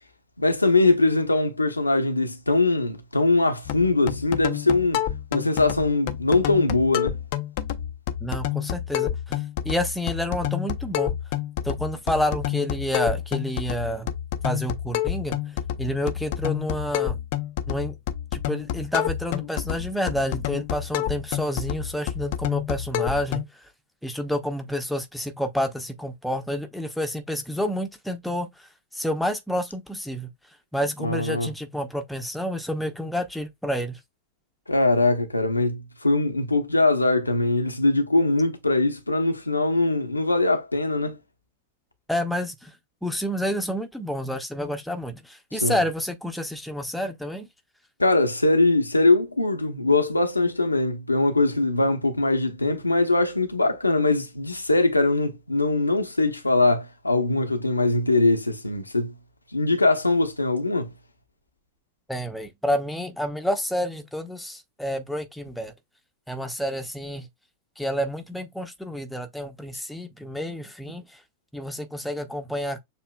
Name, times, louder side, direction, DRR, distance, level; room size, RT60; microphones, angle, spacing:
voice 1, 0.4-5.0 5.3-7.2 31.0-31.5 34.7-41.2 45.6-45.8 48.0-59.1 59.5-60.9, left 2 dB, 85° left, 0.9 m, -22 dB
sound 1, 3.6-23.4, left 11 dB, 50° left, 0.5 m, -29 dB
voice 2, 8.2-11.1 11.6-14.1 14.4-15.4 15.8-17.2 17.7-18.0 18.3-23.7 24.0-28.7 28.9-30.3 30.7-34.0 42.1-42.7 43.0-47.5 62.1-65.7 66.3-67.3 67.8-71.2 71.5-72.8, equal, ahead, 0.8 m, -29 dB
6.8 x 2.8 x 2.3 m
figure-of-eight pair, 90°, 0 cm